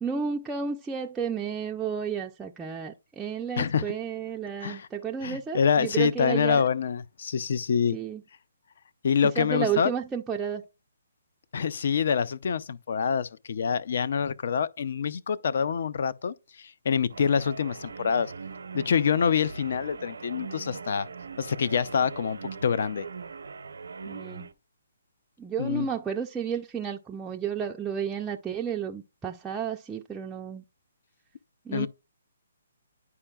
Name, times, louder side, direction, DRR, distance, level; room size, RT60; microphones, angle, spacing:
voice 1, 0.0-6.7 7.9-8.2 9.4-10.7 24.1-24.5 25.4-30.6 31.7-31.9, right 7 dB, 10° right, 0.3 m, -32 dB
voice 2, 3.6-3.9 4.6-4.9 5.2-8.0 9.0-9.9 11.5-18.3 18.7-21.1 21.4-23.1 25.6-25.9 31.7-31.9, left 7 dB, 60° left, 0.4 m, -26 dB
sound 1, 17.1-24.5, right 5 dB, 85° right, 0.6 m, -41 dB
9.8 x 4.6 x 2.2 m
hypercardioid pair, 155°, 0 cm